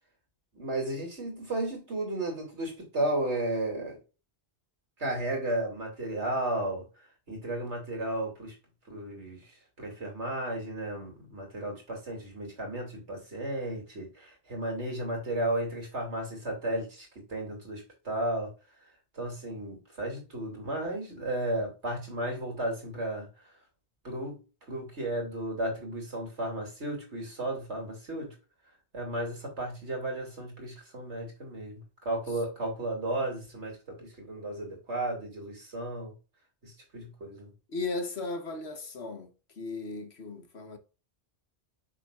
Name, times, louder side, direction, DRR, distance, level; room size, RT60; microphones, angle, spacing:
voice 1, 0.5-4.0 5.0-6.8 7.3-8.5 8.9-9.5 9.8-18.5 19.1-23.3 24.0-24.4 24.7-28.3 28.9-36.1 36.6-37.5, right 1 dB, 80° right, 3.4 m, -34 dB
voice 2, 37.7-40.8, left 3 dB, 70° left, 1.6 m, -36 dB
7.3 x 6.1 x 2.5 m
omnidirectional pair, 1.1 m